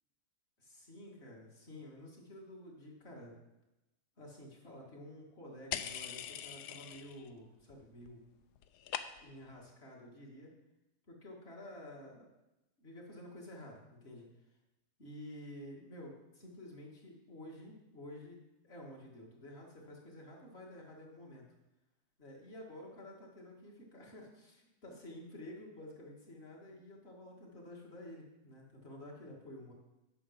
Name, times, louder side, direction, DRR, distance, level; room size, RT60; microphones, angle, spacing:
voice 1, 0.6-3.3 4.2-8.2 9.2-10.5 11.1-12.3 12.8-14.5 15.0-18.4 18.6-21.5 22.2-29.7, left 1 dB, 40° left, -2 dB, 2.1 m, -51 dB
sound 1, 5.7-7.3 7.6-8.1 8.4-9.5, left 10 dB, 85° left, 1.1 m, -42 dB
8.5 x 6.4 x 5.8 m, 0.99 s
omnidirectional pair, 1.7 m